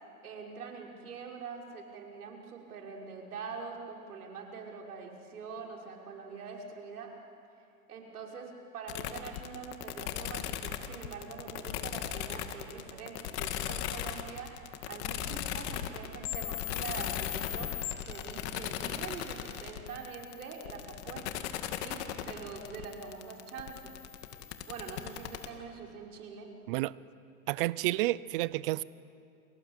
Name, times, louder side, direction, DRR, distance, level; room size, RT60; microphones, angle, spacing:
voice 1, 0.2-7.1 7.9-17.7 18.0-21.5 21.8-24.0 24.6-26.5, right 5 dB, 90° right, 0 dB, 5.8 m, -44 dB
sound 1, 8.9-25.5, left 11 dB, 50° left, 2.1 m, -37 dB
sound 2, 17.6-18.4, left 1 dB, 5° left, 1.4 m, -52 dB
voice 2, 27.5-28.8, right 18 dB, 40° right, 20 dB, 0.6 m, -30 dB
30.0 x 23.0 x 8.3 m, 2.5 s
supercardioid pair, 150°, 43 cm